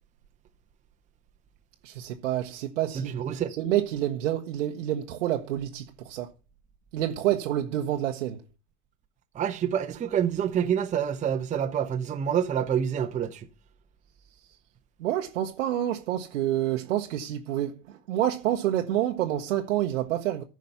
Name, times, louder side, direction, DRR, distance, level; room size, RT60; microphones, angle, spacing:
voice 1, 1.8-3.1 3.6-6.3 6.9-8.4 15.0-20.4, right 12 dB, 55° right, 1.1 m, -28 dB
voice 2, 2.9-3.5 9.3-13.5, right 8 dB, 15° right, 0.8 m, -27 dB
14.0 x 5.3 x 5.6 m
figure-of-eight pair, 85°, 45 cm